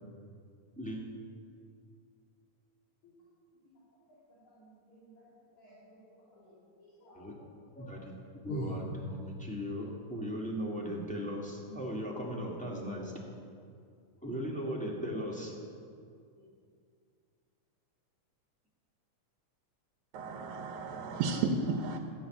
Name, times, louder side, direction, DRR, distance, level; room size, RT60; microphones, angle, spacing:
voice 1, 4.4-5.2 5.6-6.0 6.3-7.3 7.8-7.9 8.5-8.7, right 2 dB, 75° left, -9 dB, 4.3 m, -45 dB
voice 2, 7.8-8.2 8.4-13.1 14.2-15.6, equal, 5° left, -3 dB, 0.9 m, -37 dB
voice 3, 20.1-22.0, right 4 dB, 85° right, 1 dB, 2.3 m, -33 dB
13.0 x 7.5 x 8.9 m, 2.3 s
omnidirectional pair, 3.4 m